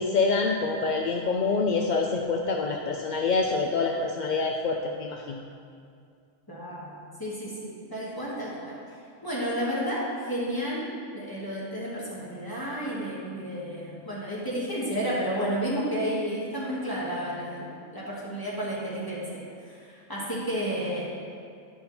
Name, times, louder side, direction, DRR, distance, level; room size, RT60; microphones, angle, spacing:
voice 1, 0.0-5.4, left 4 dB, 55° left, 1 dB, 0.5 m, -26 dB
voice 2, 6.5-8.7 9.2-10.9 11.1-19.4 19.7-21.0, equal, 15° left, -7 dB, 2.1 m, -31 dB
11.0 x 5.5 x 4.3 m, 2.3 s
omnidirectional pair, 1.3 m